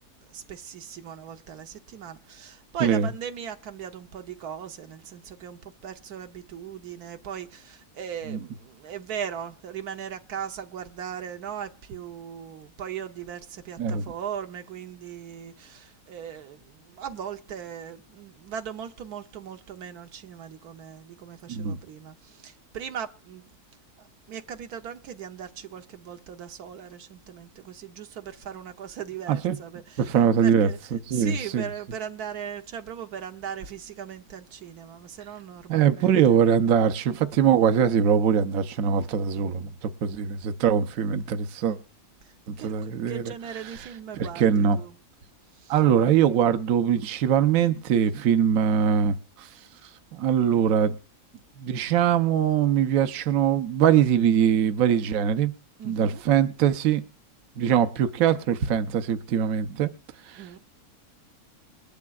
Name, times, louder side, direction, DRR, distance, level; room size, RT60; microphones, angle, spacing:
voice 1, 0.3-23.4 24.0-30.8 31.1-36.2 42.6-44.9 45.6-45.7 55.8-56.2 60.4-60.6, right 8 dB, 85° right, 1.4 m, -38 dB
voice 2, 30.0-31.7 35.7-41.8 42.5-43.3 43.6-43.9 44.2-44.8 45.7-49.5 50.1-50.9 51.6-55.5 55.8-57.0 57.6-59.9 60.3-60.5, right 8 dB, 70° right, 1.2 m, -22 dB
21.0 x 12.0 x 2.4 m
omnidirectional pair, 1.6 m